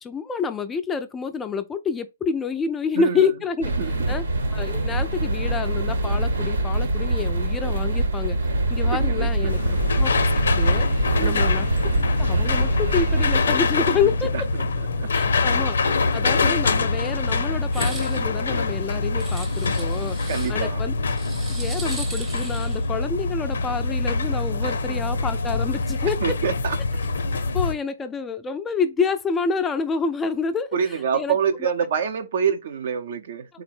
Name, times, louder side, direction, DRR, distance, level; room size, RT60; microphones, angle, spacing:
voice 1, 0.0-3.7 4.1-4.2 4.5-8.4 8.7-9.6 10.0-10.1 10.5-11.7 12.2-14.3 15.1-15.8 16.1-21.0 21.5-26.4 27.5-31.7, left 5 dB, 15° left, 0.3 m, -28 dB
voice 2, 2.9-3.3 3.8-3.9 9.0-9.8 11.2-11.5 13.9-14.0 14.3-14.6 15.0-15.1 16.4-16.6 20.3-20.8 24.6-25.0 26.2-26.8 30.7-33.5, right 7 dB, 60° right, 0.7 m, -27 dB
sound 1, 3.6-13.4, right 1 dB, 80° right, 1.1 m, -24 dB
sound 2, 9.5-27.7, left 3 dB, 75° left, 0.5 m, -24 dB
sound 3, 17.7-18.2 19.2-20.5 21.1-22.9, right 3 dB, 15° right, 0.8 m, -38 dB
3.8 x 2.1 x 4.3 m
hypercardioid pair, 140°, 0 cm